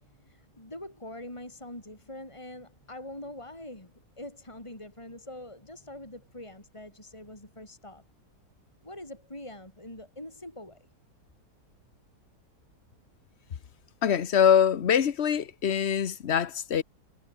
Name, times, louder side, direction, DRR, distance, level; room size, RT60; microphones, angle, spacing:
voice 1, 0.0-8.0 8.8-10.9, left 1 dB, 15° left, 5.3 m, -44 dB
voice 2, 14.0-16.8, left 8 dB, 45° left, 1.1 m, -23 dB
omnidirectional pair, 1.7 m